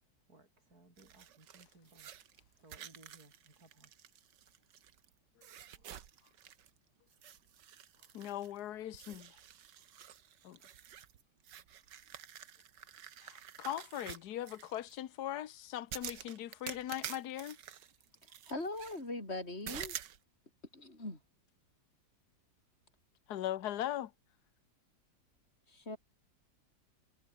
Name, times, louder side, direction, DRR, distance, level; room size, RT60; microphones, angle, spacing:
voice 1, 0.3-2.1 2.6-3.9, right 2 dB, 55° right, 6.3 m, -62 dB
sound 1, 1.0-5.1 5.4-6.8 7.1-8.6 8.9-14.9 15.9-19.0 19.7-20.2, right 9 dB, 70° right, 1.8 m, -49 dB
voice 2, 8.1-9.3 10.4-10.6 13.2-17.6 23.3-24.1, left 12 dB, 65° left, 1.5 m, -40 dB
voice 3, 18.5-20.0 20.7-21.2 25.7-26.0, left 2 dB, 35° left, 6.6 m, -41 dB
omnidirectional pair, 2.0 m